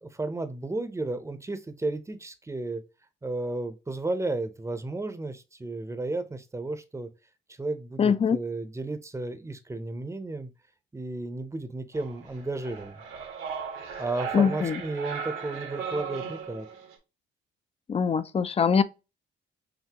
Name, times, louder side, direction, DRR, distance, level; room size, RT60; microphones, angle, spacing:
voice 1, 0.0-2.8 3.2-7.1 7.5-10.5 10.9-13.0 14.0-16.7, right 2 dB, 15° right, 0.7 m, -33 dB
voice 2, 8.0-8.4 14.3-14.8 17.9-18.8, left 6 dB, 30° left, 0.5 m, -23 dB
sound 1, 11.9-16.9, right 6 dB, 85° right, 1.4 m, -37 dB
5.9 x 2.6 x 2.9 m
cardioid pair, 90°, 20 cm